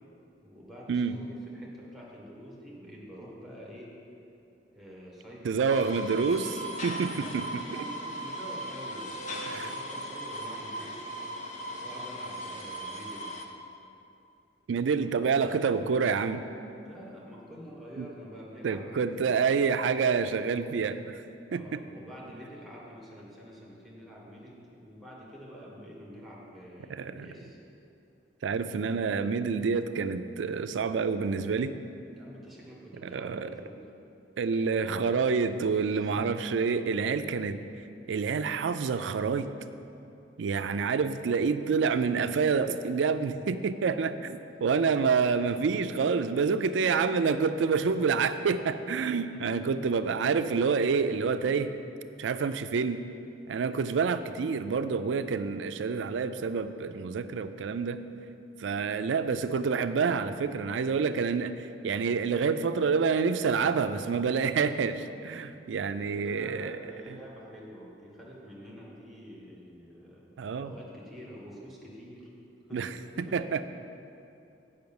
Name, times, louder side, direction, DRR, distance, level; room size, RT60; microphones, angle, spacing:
voice 1, 0.4-3.9 4.7-5.6 7.3-11.0 11.8-13.4 16.8-19.6 21.5-27.6 32.1-33.8 35.9-36.3 49.3-49.4 57.1-57.4 66.1-70.2 70.6-72.3 72.7-72.8 73.1-73.4, equal, ahead, -4 dB, 1.6 m, -47 dB
voice 2, 5.4-7.9 9.5-9.7 14.7-16.4 18.0-18.1 18.6-21.2 21.5-21.8 26.9-27.3 28.4-31.7 33.0-33.5 34.4-37.6 38.1-39.5 40.4-51.7 52.2-53.0 53.5-58.0 58.6-66.8 70.4-70.7 72.7-72.9 73.2-73.6, right 5 dB, 80° right, 11 dB, 0.4 m, -28 dB
sound 1, 5.7-13.5, right 1 dB, 40° left, 0.7 m, -38 dB
7.9 x 5.5 x 7.0 m, 2.7 s
head